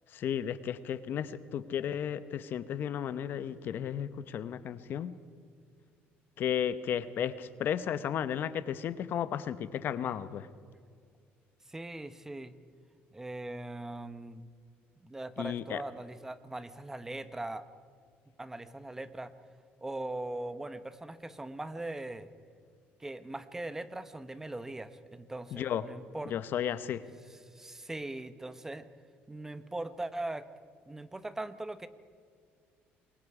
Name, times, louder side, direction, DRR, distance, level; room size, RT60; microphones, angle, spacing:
voice 1, 0.1-5.1 6.4-10.5 15.4-15.8 25.5-25.8 26.3-27.0, left 9 dB, 55° left, 14 dB, 0.9 m, -34 dB
voice 2, 11.7-12.6 13.1-14.5 15.0-17.7 18.4-19.4 19.8-22.3 23.0-26.4 27.3-28.9 29.3-30.5 30.9-31.9, right 2 dB, 10° right, 13 dB, 1.0 m, -40 dB
28.0 x 23.0 x 4.9 m, 2.1 s
cardioid pair, 135°, 4 cm